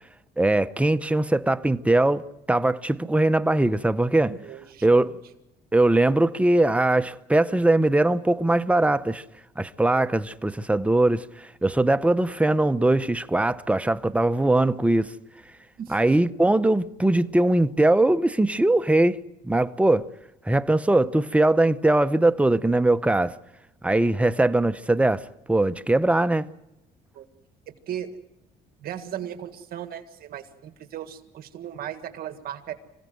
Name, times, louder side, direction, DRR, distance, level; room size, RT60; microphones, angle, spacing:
voice 1, 0.4-2.2 2.5-4.3 4.8-5.1 5.7-9.2 9.6-15.1 15.9-20.1 20.5-23.3 23.8-26.5, right 2 dB, 5° right, 0.7 m, -21 dB
voice 2, 4.3-5.2 15.8-16.0 27.2-27.3 27.7-28.1 28.8-32.7, right 10 dB, 60° right, 1.8 m, -37 dB
26.5 x 16.5 x 7.8 m
cardioid pair, 110°, 17 cm